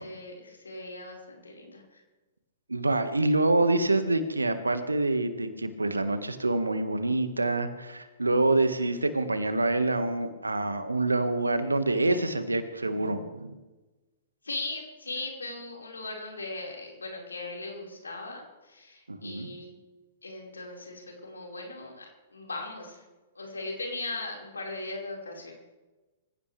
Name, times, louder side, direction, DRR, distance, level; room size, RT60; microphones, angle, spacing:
voice 1, 0.0-2.0 14.4-19.7 20.2-23.0 23.3-25.5, left 2 dB, 85° left, -1 dB, 5.0 m, -38 dB
voice 2, 2.7-13.5 19.1-19.5, right 2 dB, 90° right, 9 dB, 1.7 m, -26 dB
25.5 x 16.0 x 3.4 m, 1.2 s
figure-of-eight pair, 110°, 0 cm